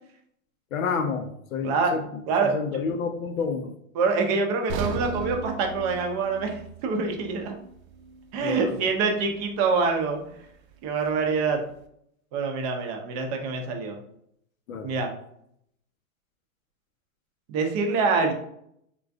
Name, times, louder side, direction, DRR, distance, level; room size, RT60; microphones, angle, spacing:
voice 1, 0.7-2.0 2.4-3.7 8.4-8.8 14.7-14.9, left 5 dB, 80° left, 7 dB, 0.7 m, -29 dB
voice 2, 1.6-2.0 2.3-2.5 3.9-7.5 8.3-10.2 10.8-11.6 12.3-14.0 14.8-15.1 17.5-18.3, right 4 dB, 30° right, 3 dB, 0.5 m, -25 dB
sound 1, 4.7-8.8 9.1-9.3 9.9-10.0, right 5 dB, 85° right, 0.6 m, -36 dB
3.7 x 2.3 x 2.5 m, 0.71 s
hypercardioid pair, 140°, 41 cm